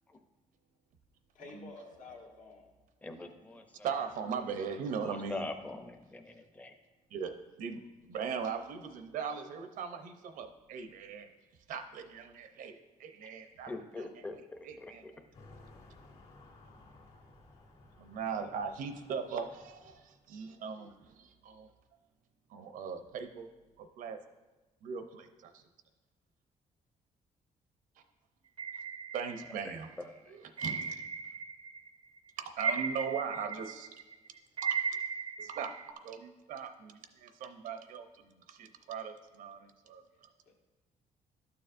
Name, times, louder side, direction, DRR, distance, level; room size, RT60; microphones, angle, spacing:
voice 1, 1.3-2.7 40.1-40.5, left 3 dB, 80° left, 1 dB, 1.3 m, -51 dB
voice 2, 3.0-3.6 5.1-6.7 13.7-15.1 29.6-30.4, left 2 dB, 10° left, 6 dB, 0.5 m, -43 dB
voice 3, 3.8-5.4 7.1-7.3 7.6-7.8 8.1-11.3 11.7-13.7 14.0-14.2 14.6-15.0 18.0-21.7 22.5-23.5 23.8-24.2 24.8-25.6 29.1-29.9 30.3-31.0 32.4-33.9 34.6-34.8 35.4-40.3, right 6 dB, 80° right, 7 dB, 0.7 m, -39 dB
sound 1, 15.3-20.2, left 2 dB, 50° left, 1.8 m, -57 dB
sound 2, 28.6-29.9 30.6-31.9 32.2-35.9, right 6 dB, 40° right, 0.4 m, -37 dB
12.0 x 6.9 x 2.5 m, 1.1 s
cardioid pair, 160°, 14 cm